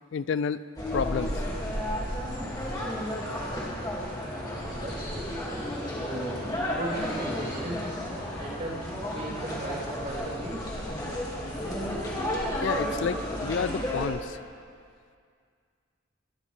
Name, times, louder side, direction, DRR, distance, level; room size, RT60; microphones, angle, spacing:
voice 1, 0.1-0.7 0.9-1.4 12.6-14.4, left 6 dB, 60° left, 15 dB, 0.3 m, -30 dB
sound 1, 0.8-14.1, equal, 20° left, 2.1 m, -32 dB
voice 2, 4.4-5.4 5.9-6.5 6.7-8.0 8.4-8.8 9.1-10.7, right 1 dB, 40° right, -8 dB, 3.4 m, -37 dB
21.0 x 13.0 x 3.3 m, 2.1 s
head